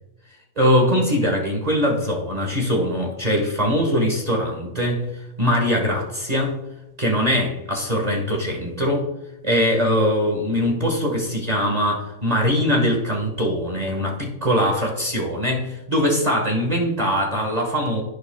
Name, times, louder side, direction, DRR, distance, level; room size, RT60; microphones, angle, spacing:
voice 1, 0.6-6.6 7.0-9.1 9.4-18.0, equal, 25° right, -1 dB, 1.7 m, -22 dB
16.0 x 6.1 x 2.3 m, 0.96 s
omnidirectional pair, 1.5 m